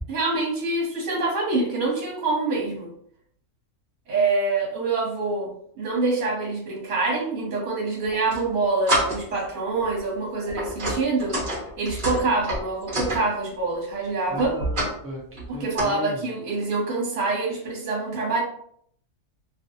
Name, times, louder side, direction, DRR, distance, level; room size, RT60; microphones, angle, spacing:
voice 1, 0.1-2.9 4.1-11.4 11.8-14.6 15.5-18.4, right 3 dB, 65° right, -3 dB, 1.2 m, -26 dB
sound 1, 8.0-8.4 8.9-9.4 9.8-10.0 10.5-13.2 14.4-15.0 15.3-15.8, right 1 dB, 45° right, 0.8 m, -27 dB
voice 2, 14.3-15.2 15.5-16.2, equal, 15° right, -4 dB, 0.5 m, -36 dB
2.6 x 2.4 x 2.6 m, 0.65 s
omnidirectional pair, 1.4 m